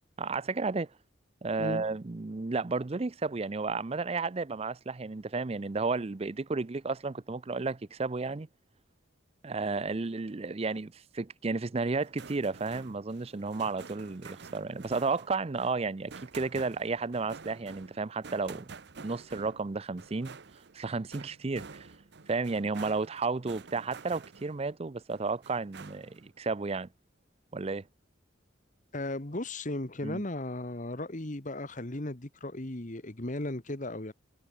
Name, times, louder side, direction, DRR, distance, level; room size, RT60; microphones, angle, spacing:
voice 1, 0.2-0.9 1.4-8.5 9.4-18.7 19.0-20.4 20.7-21.9 22.3-26.9 27.5-27.8 30.0-30.2, right 3 dB, 30° right, 0.5 m, -32 dB
sound 1, 11.9-24.7 25.1-26.3, right 5 dB, 55° right, 0.8 m, -49 dB
voice 2, 28.9-34.1, left 1 dB, 40° left, 1.5 m, -36 dB
head